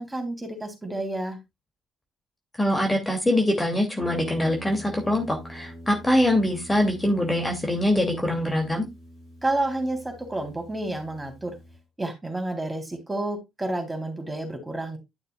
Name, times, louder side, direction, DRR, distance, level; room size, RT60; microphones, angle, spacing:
voice 1, 0.0-1.4 9.4-11.6 12.0-15.0, right 2 dB, 15° right, 3 dB, 3.4 m, -30 dB
voice 2, 2.6-8.9, left 1 dB, 15° left, 3 dB, 2.6 m, -23 dB
Guitar, 4.0-11.8, equal, 60° left, 5.9 m, -44 dB
12.0 x 6.5 x 2.3 m, 0.20 s
hypercardioid pair, 45°, 0 cm